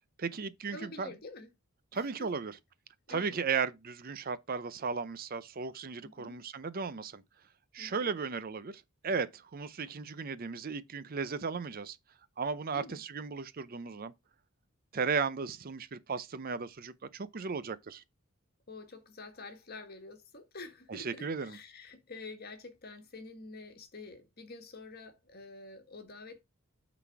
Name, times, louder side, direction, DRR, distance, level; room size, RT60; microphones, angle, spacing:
voice 1, 0.2-1.1 1.9-2.6 3.1-7.2 7.7-12.0 12.4-14.1 14.9-18.0 20.9-21.6, right 5 dB, 40° right, 0.5 m, -35 dB
voice 2, 0.7-1.5 1.9-2.3 3.1-3.4 6.0-6.3 7.8-8.1 12.7-13.0 18.7-26.4, left 3 dB, 45° left, 1.6 m, -48 dB
9.1 x 4.1 x 4.6 m
head